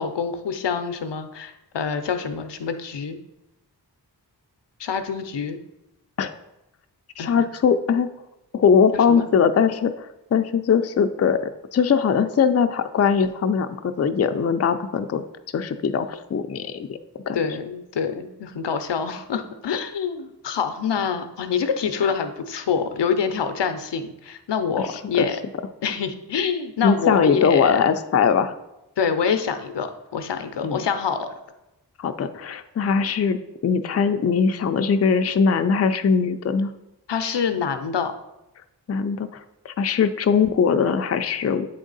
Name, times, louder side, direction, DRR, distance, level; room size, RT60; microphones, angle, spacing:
voice 1, 0.0-3.2 4.8-5.6 7.2-7.4 8.9-9.3 17.3-25.4 25.8-27.8 29.0-31.4 37.1-38.1, left 6 dB, 85° left, 8 dB, 0.6 m, -26 dB
voice 2, 7.2-8.1 8.5-9.9 10.3-15.2 15.5-17.0 17.3-17.4 25.2-25.3 26.8-28.5 30.6-30.8 32.0-36.7 38.9-41.7, left 6 dB, 40° left, 8 dB, 0.4 m, -21 dB
7.9 x 3.6 x 3.9 m, 0.92 s
wide cardioid pair, 50°, 41 cm